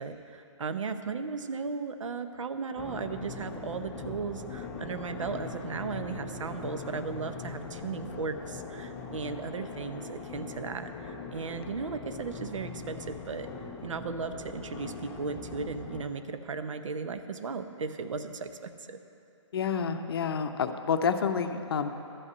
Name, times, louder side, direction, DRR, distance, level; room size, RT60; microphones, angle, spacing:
voice 1, 0.0-13.5 13.8-19.0, right 5 dB, 75° right, 9 dB, 0.8 m, -36 dB
sound 1, 2.8-16.0, left 5 dB, 10° left, 0.4 m, -41 dB
voice 2, 19.5-21.9, left 6 dB, 50° left, 8 dB, 0.7 m, -29 dB
12.0 x 5.5 x 8.4 m, 2.8 s
hypercardioid pair, 160°, 16 cm